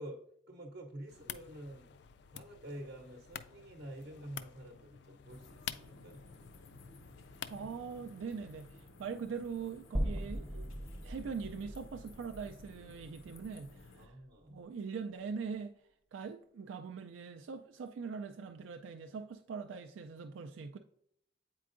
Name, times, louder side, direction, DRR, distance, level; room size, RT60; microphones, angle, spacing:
voice 1, 0.0-2.0 2.3-6.2 14.0-14.6, right 1 dB, 55° right, 0.7 m, -48 dB
sound 1, 1.1-8.7, left 9 dB, 60° left, 0.3 m, -49 dB
sound 2, 5.3-14.1, left 2 dB, 90° left, 0.6 m, -56 dB
voice 2, 7.5-10.7 11.0-14.2 14.5-15.7 16.1-20.8, right 5 dB, 80° right, 0.3 m, -42 dB
sound 3, 9.9-14.2, equal, 5° right, 0.6 m, -40 dB
8.3 x 4.5 x 2.5 m
head